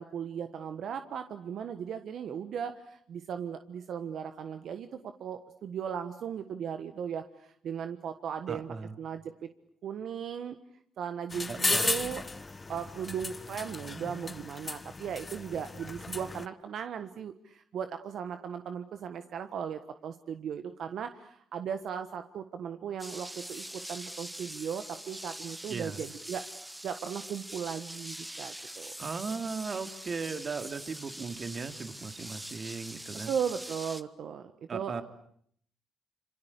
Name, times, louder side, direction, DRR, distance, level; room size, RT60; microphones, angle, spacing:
voice 1, 0.0-9.5 9.8-10.6 11.0-12.2 12.7-26.4 26.8-28.9 33.3-35.0, right 8 dB, 65° right, 9 dB, 1.4 m, -37 dB
voice 2, 8.5-9.0 11.5-11.9 25.7-26.0 29.0-33.3 34.7-35.0, right 5 dB, 45° right, 9 dB, 2.5 m, -37 dB
sound 1, 11.3-16.5, left 3 dB, 25° left, 1.1 m, -35 dB
sound 2, 23.0-34.0, right 1 dB, 5° right, 1.4 m, -43 dB
27.5 x 25.5 x 8.3 m, 0.66 s
cardioid pair, 90°, 0 cm